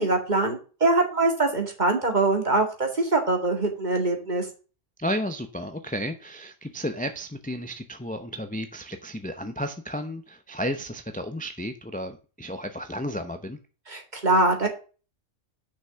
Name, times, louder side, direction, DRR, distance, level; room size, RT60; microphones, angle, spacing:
voice 1, 0.0-4.5 13.9-14.7, right 2 dB, 40° right, 3 dB, 2.2 m, -23 dB
voice 2, 5.0-13.6, equal, 10° left, 7 dB, 0.7 m, -33 dB
6.5 x 6.0 x 6.8 m, 0.35 s
omnidirectional pair, 1.2 m